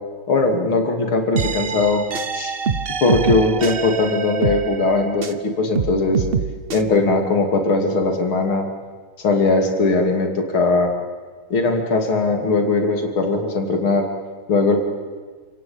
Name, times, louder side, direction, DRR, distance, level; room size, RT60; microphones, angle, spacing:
voice 1, 0.3-2.0 2.3-2.6 3.0-6.3 6.7-8.7 9.2-10.9 11.5-14.1 14.5-14.8, left 3 dB, 75° left, 4 dB, 3.6 m, -19 dB
sound 1, 1.3-5.4 5.7-6.8, right 5 dB, 45° right, 0.8 m, -25 dB
28.0 x 18.5 x 8.8 m, 1.5 s
omnidirectional pair, 2.3 m